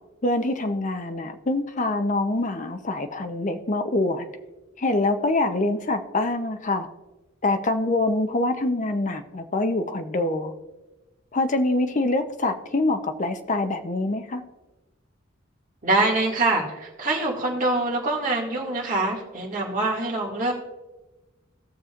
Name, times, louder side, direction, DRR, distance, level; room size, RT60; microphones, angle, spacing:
voice 1, 0.2-4.3 4.8-6.9 7.4-10.5 11.3-14.4, left 2 dB, 40° left, 7 dB, 0.7 m, -25 dB
voice 2, 15.8-20.5, right 2 dB, 40° right, -2 dB, 2.1 m, -24 dB
17.5 x 6.8 x 2.5 m, 1.1 s
head